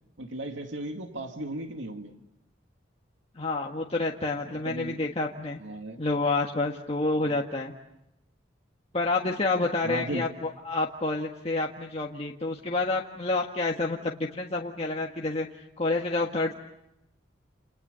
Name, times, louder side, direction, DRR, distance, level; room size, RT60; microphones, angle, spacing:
voice 1, 0.2-2.1 4.5-5.0 5.6-6.0 7.2-7.4 9.8-10.3, right 1 dB, 80° right, 4 dB, 2.3 m, -36 dB
voice 2, 3.3-5.6 6.0-7.7 8.9-10.3 10.6-15.5 15.8-16.5, left 2 dB, 30° left, 0 dB, 1.6 m, -28 dB
29.5 x 29.0 x 6.9 m, 0.85 s
head